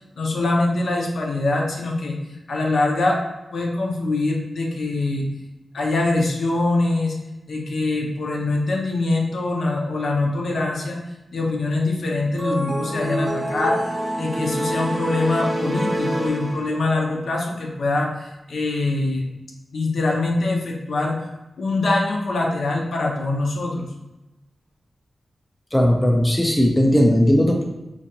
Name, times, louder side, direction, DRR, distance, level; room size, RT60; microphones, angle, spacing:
voice 1, 0.2-2.2 2.5-3.2 3.5-5.3 5.7-7.2 7.5-11.0 11.3-19.3 19.7-21.3 21.6-23.9, left 2 dB, 70° left, -1 dB, 0.7 m, -23 dB
sound 1, 12.4-17.0, right 1 dB, 35° right, 0.6 m, -27 dB
voice 2, 25.7-27.6, equal, 10° left, 0 dB, 0.4 m, -17 dB
4.5 x 2.4 x 2.8 m, 0.98 s
wide cardioid pair, 165°, 0 cm